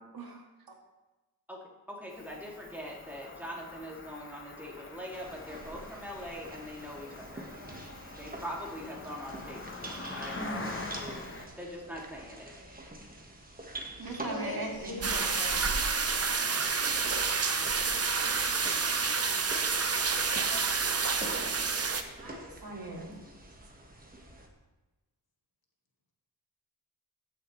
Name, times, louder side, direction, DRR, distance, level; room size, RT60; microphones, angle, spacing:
voice 1, 1.9-7.5 8.2-11.0 11.6-12.5, equal, 5° right, -3 dB, 2.5 m, -42 dB
Cricket, 2.1-11.5, left 3 dB, 30° left, 1.0 m, -44 dB
sound 1, 5.1-24.5, right 1 dB, 20° right, 1.5 m, -45 dB
voice 2, 10.3-10.7 14.0-15.3 20.3-21.4 22.1-23.1, right 2 dB, 65° right, 0 dB, 2.1 m, -41 dB
voice 3, 14.0-15.7, left 1 dB, 65° left, 0 dB, 2.0 m, -40 dB
sound 2, 15.0-22.0, right 5 dB, 40° right, 0.8 m, -29 dB
15.0 x 6.7 x 3.2 m, 1.1 s
wide cardioid pair, 80°, 38 cm